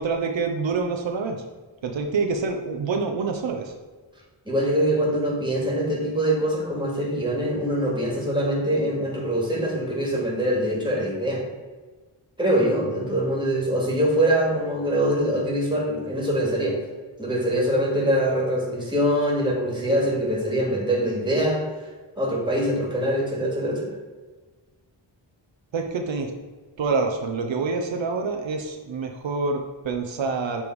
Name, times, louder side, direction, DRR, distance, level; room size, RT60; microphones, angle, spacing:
voice 1, 0.0-1.4 1.8-3.7 25.7-26.3 26.8-30.6, right 4 dB, 80° right, 3 dB, 0.7 m, -26 dB
voice 2, 4.5-11.4 12.4-16.8 17.2-21.6 22.2-23.9, right 1 dB, 10° right, -2 dB, 2.0 m, -23 dB
7.1 x 3.4 x 4.6 m, 1.3 s
wide cardioid pair, 70°, 45 cm